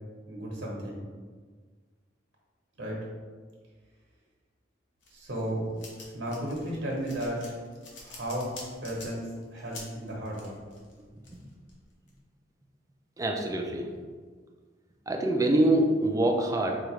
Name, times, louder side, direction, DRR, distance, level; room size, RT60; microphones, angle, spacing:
voice 1, 0.3-1.0 2.8-3.0 5.1-5.7 6.0-7.6 8.0-8.5 8.8-10.6, right 1 dB, 80° right, -2 dB, 1.1 m, -34 dB
sound 1, 5.0-12.1, left 2 dB, 70° left, 0.9 m, -47 dB
voice 2, 13.2-13.9 15.1-16.8, right 1 dB, 20° right, 1 dB, 0.4 m, -25 dB
4.7 x 2.4 x 3.1 m, 1.5 s
head